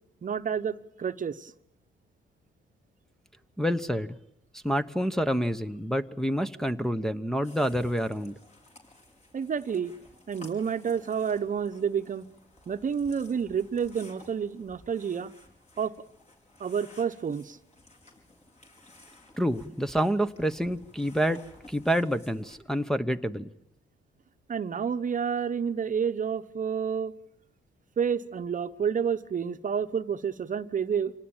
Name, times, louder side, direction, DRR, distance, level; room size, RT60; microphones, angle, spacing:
voice 1, 0.2-1.5 9.3-9.9 10.3-12.3 12.7-15.3 15.8-15.9 16.6-17.6 24.5-27.1 28.0-31.1, right 7 dB, 40° right, 1.0 m, -29 dB
voice 2, 3.6-4.2 4.5-8.3 19.4-23.5, equal, ahead, 0.9 m, -28 dB
sound 1, 7.4-22.6, left 2 dB, 35° left, 5.3 m, -55 dB
26.0 x 18.5 x 8.9 m
cardioid pair, 90°, 20 cm